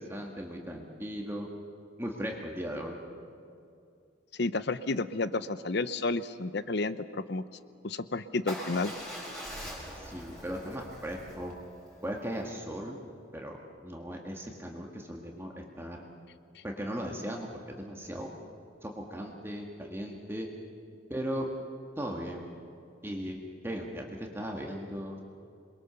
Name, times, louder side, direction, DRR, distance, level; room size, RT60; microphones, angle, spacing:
voice 1, 0.0-1.5 2.0-3.0 9.9-11.5 12.0-13.0 13.3-16.0 16.6-18.3 18.8-20.5 21.1-21.5 22.0-22.5 23.0-23.4 23.6-25.2, equal, 10° right, 0 dB, 1.7 m, -37 dB
voice 2, 4.4-7.4 7.8-8.9, left 3 dB, 55° left, 14 dB, 0.7 m, -31 dB
Motorcycle / Engine starting / Idling, 8.5-12.6, equal, 5° left, 5.0 m, -43 dB
27.5 x 22.0 x 6.9 m, 2.4 s
head